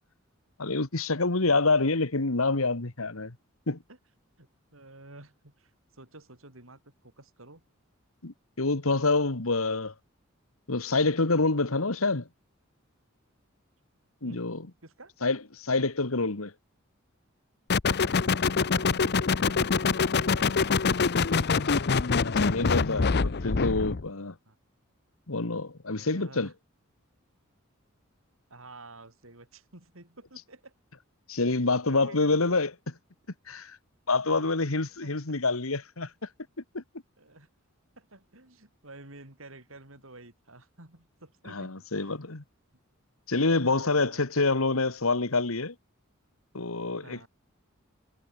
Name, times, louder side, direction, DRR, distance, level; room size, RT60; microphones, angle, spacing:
voice 1, 0.6-3.4 3.7-3.8 8.2-9.9 10.7-12.3 14.2-14.6 15.2-16.5 22.2-24.4 25.3-26.5 31.3-32.7 33.5-33.8 34.1-36.3 36.7-36.8 41.5-42.4 43.3-45.8 46.5-47.3, left 3 dB, 90° left, 1.9 m, -27 dB
voice 2, 4.4-7.6 14.2-14.4 14.8-15.1 18.0-19.7 20.0-20.9 23.5-23.7 24.5-24.6 26.0-26.5 28.5-30.7 31.4-31.6 31.9-32.5 34.2-34.5 35.0-35.1 37.2-37.5 38.0-42.2 43.6-44.3 47.0-47.3, right 2 dB, 70° right, 5.5 m, -51 dB
sound 1, 17.7-24.0, left 5 dB, 55° left, 0.7 m, -25 dB
head